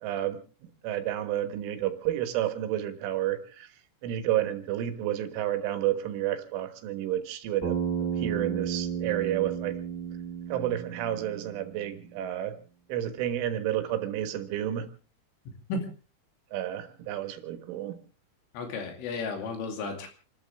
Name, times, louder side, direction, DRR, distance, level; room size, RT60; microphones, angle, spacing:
voice 1, 0.0-0.4 0.8-3.7 4.0-7.8 8.2-9.8 10.5-12.6 12.9-14.9 16.5-18.0, right 12 dB, 75° right, 8 dB, 3.8 m, -30 dB
Bass guitar, 7.6-11.9, right 7 dB, 5° left, 7.2 m, -33 dB
voice 2, 18.5-20.1, left 3 dB, 75° left, 4 dB, 5.0 m, -33 dB
29.0 x 12.5 x 3.5 m, 0.36 s
omnidirectional pair, 5.8 m